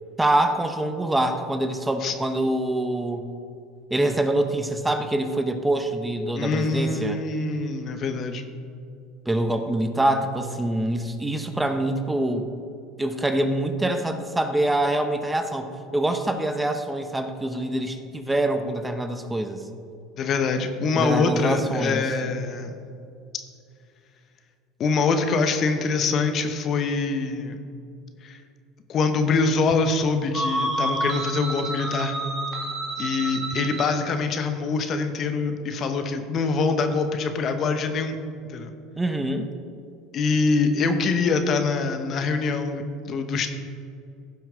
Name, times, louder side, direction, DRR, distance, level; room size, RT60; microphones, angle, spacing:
voice 1, 0.2-3.3 3.9-7.2 9.3-12.5 13.0-19.6 20.9-22.1 39.0-39.5, right 1 dB, 10° right, 7 dB, 0.9 m, -25 dB
voice 2, 6.3-8.4 20.2-22.7 24.8-27.6 28.2-28.4 28.9-32.2 33.0-38.1 38.5-38.7 40.1-43.5, left 4 dB, 45° left, 7 dB, 0.9 m, -24 dB
sound 1, 30.3-34.1, right 1 dB, 40° right, 1.9 m, -29 dB
15.5 x 5.8 x 3.8 m, 2.4 s
hypercardioid pair, 75°, 0 cm